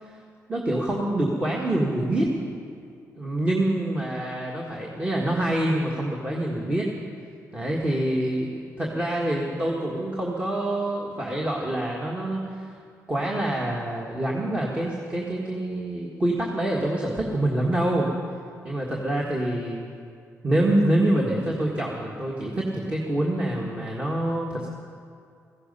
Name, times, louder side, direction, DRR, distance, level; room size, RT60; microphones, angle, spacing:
voice 1, 0.5-2.4 3.2-6.9 7.5-8.5 8.8-12.6 13.1-18.1 18.6-19.8 20.4-24.7, right 1 dB, 20° right, -3 dB, 1.6 m, -26 dB
16.0 x 15.0 x 5.5 m, 2.3 s
cardioid pair, 135°, 6 cm